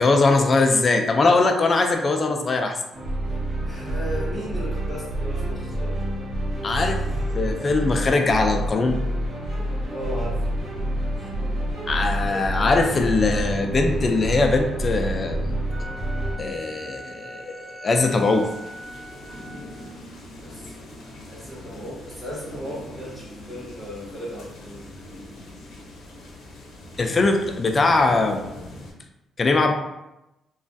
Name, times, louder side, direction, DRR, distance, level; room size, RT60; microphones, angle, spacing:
voice 1, 0.0-2.8 6.6-7.0 7.3-9.0 11.9-15.6 16.4-18.5 27.0-28.5 29.4-29.7, left 3 dB, 35° left, 4 dB, 0.4 m, -21 dB
sound 1, 2.9-16.3, right 1 dB, 55° right, 1.1 m, -27 dB
voice 2, 3.6-6.0 9.9-10.4 20.4-20.7 21.3-24.9, equal, 5° right, -8 dB, 1.4 m, -36 dB
Wind instrument woodwind instrument, 15.7-20.0, right 1 dB, 30° right, 0.4 m, -41 dB
sound 2, 18.0-28.9, left 1 dB, 70° left, 0.7 m, -42 dB
3.1 x 2.3 x 2.6 m, 0.94 s
cardioid pair, 90°, 0 cm